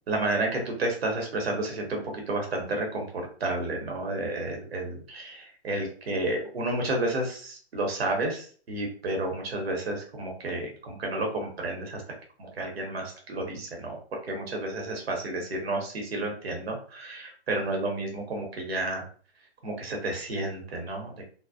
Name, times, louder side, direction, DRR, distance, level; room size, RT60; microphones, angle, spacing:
voice 1, 0.1-12.0 12.4-14.0 14.3-19.0 19.6-21.2, right 2 dB, 65° right, 1 dB, 0.9 m, -31 dB
2.5 x 2.0 x 2.5 m, 0.44 s
figure-of-eight pair, 125°, 33 cm